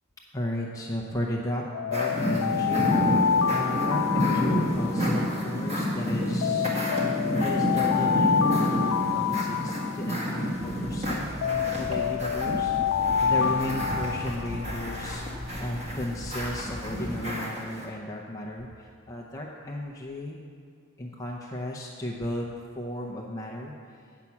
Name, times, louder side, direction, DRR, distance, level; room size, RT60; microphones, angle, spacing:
voice 1, 0.3-2.9 3.5-6.7 7.4-11.3 11.8-12.8 13.2-20.4 21.0-22.5 22.7-23.7, left 1 dB, 15° left, -2 dB, 0.6 m, -34 dB
Alarm, 1.7-5.9 6.4-10.9 11.4-15.2, left 7 dB, 70° left, 0.3 m, -28 dB
sound 1, 1.9-17.8, equal, 30° right, 1.7 m, -29 dB
Motor vehicle (road), 10.5-17.1, equal, 50° right, 2.0 m, -40 dB
9.4 x 5.8 x 7.2 m, 2.2 s
head